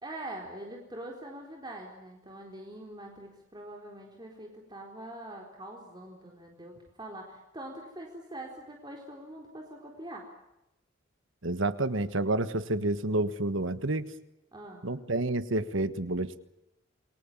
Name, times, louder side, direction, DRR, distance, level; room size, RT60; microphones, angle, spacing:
voice 1, 0.0-10.3 14.5-14.9, right 1 dB, 20° right, 0 dB, 4.0 m, -44 dB
voice 2, 11.4-14.1 14.8-16.4, right 2 dB, 80° right, 12 dB, 1.5 m, -29 dB
28.5 x 23.0 x 7.3 m, 0.91 s
head